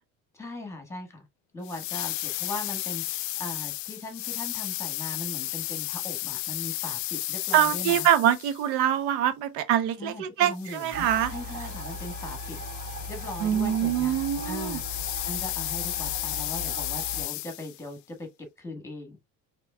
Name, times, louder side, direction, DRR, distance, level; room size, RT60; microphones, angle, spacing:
voice 1, 0.3-1.2 1.5-8.1 10.0-12.6 13.1-19.2, left 2 dB, 10° left, 1.5 m, -39 dB
sound 1, 1.6-8.7 10.6-17.8, left 18 dB, 65° left, 0.4 m, -34 dB
voice 2, 7.5-11.3 13.4-14.8, right 10 dB, 90° right, 0.6 m, -24 dB
sound 2, 10.9-17.3, equal, 40° right, 2.7 m, -38 dB
4.2 x 3.0 x 2.2 m
cardioid pair, 110°, 31 cm